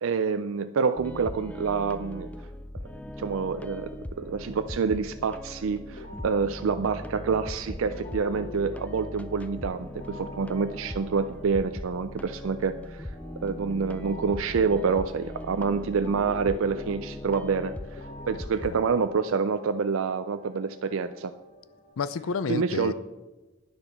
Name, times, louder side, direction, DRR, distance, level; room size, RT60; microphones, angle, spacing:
voice 1, 0.0-2.3 3.2-3.9 4.2-13.1 13.4-21.3 22.5-22.9, right 5 dB, 75° right, 10 dB, 0.4 m, -27 dB
sound 1, 1.0-18.7, left 1 dB, 5° left, 0.3 m, -40 dB
sound 2, 5.9-21.9, left 2 dB, 35° left, 1.5 m, -48 dB
voice 2, 22.0-22.9, left 5 dB, 80° left, 16 dB, 0.5 m, -30 dB
9.7 x 6.9 x 5.8 m, 1.1 s
head